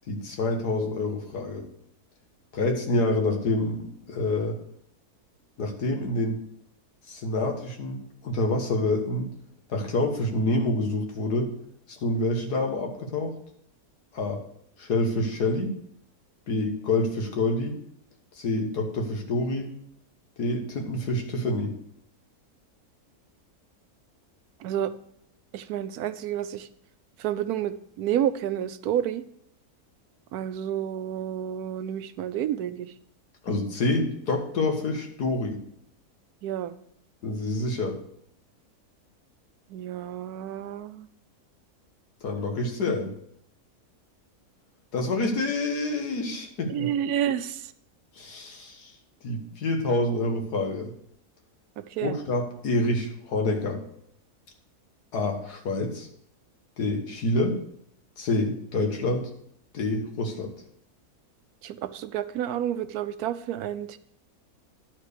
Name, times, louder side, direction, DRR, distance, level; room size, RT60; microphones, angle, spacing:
voice 1, 0.1-1.6 2.5-4.6 5.6-6.4 7.1-9.3 9.7-11.5 11.9-13.3 14.1-14.4 14.8-15.7 16.5-17.8 18.4-19.7 20.4-21.7 33.4-35.6 37.2-38.0 42.2-43.1 44.9-46.9 48.2-48.9 49.2-50.9 52.0-53.8 55.1-56.1 56.8-57.6 58.2-59.3 59.7-60.5, left 2 dB, 85° left, 3 dB, 2.0 m, -27 dB
voice 2, 24.6-24.9 25.5-26.7 27.2-29.2 30.3-32.9 36.4-36.7 39.7-41.1 46.7-47.7 51.8-52.2 61.6-64.0, right 10 dB, 75° right, 13 dB, 1.1 m, -30 dB
11.0 x 4.5 x 6.7 m, 0.70 s
omnidirectional pair, 1.6 m